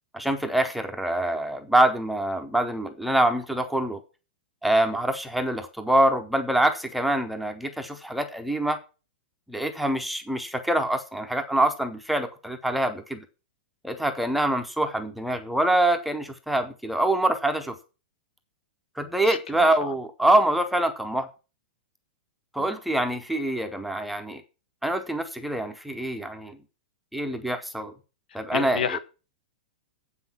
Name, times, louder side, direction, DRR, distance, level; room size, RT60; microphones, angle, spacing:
voice 1, 0.1-4.0 4.6-8.8 9.5-13.2 13.8-17.8 19.0-21.3 22.5-24.4 24.8-26.6 27.1-27.9 28.3-29.0, right 1 dB, ahead, 0.7 m, -25 dB
voice 2, 28.5-29.0, left 8 dB, 75° left, 1.0 m, -29 dB
8.0 x 5.9 x 7.3 m
supercardioid pair, 170°, 5 cm